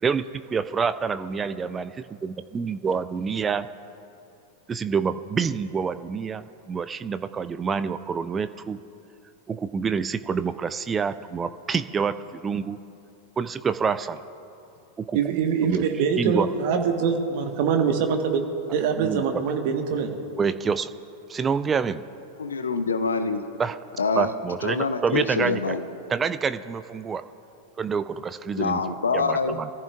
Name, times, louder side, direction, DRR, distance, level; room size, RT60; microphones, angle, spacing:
voice 1, 0.5-1.8 2.2-3.7 4.7-8.8 9.5-12.8 13.4-14.2 15.0-15.4 15.6-15.9 16.2-16.5 19.0-19.2 20.4-20.9 21.3-22.0 23.6-23.8 24.2-25.7 26.1-27.2 27.8-28.8 29.1-29.7, right 6 dB, 20° right, 13 dB, 0.5 m, -27 dB
voice 2, 15.1-18.4 18.7-20.1, right 6 dB, 50° right, 4 dB, 1.5 m, -24 dB
voice 3, 22.4-23.4 24.0-24.3 24.6-25.8 28.6-29.6, left 4 dB, 70° left, 9 dB, 0.8 m, -25 dB
25.5 x 14.5 x 2.5 m, 2.7 s
figure-of-eight pair, 90°, 0 cm